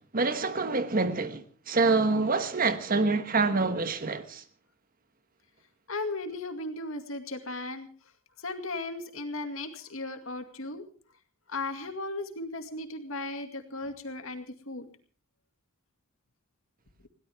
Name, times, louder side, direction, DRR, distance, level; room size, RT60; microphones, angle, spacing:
voice 1, 0.1-4.4, right 3 dB, 45° right, 1.3 m, -26 dB
voice 2, 5.9-7.9 8.4-10.8 11.5-14.9, left 2 dB, 70° left, 2.3 m, -36 dB
21.5 x 17.0 x 3.5 m
head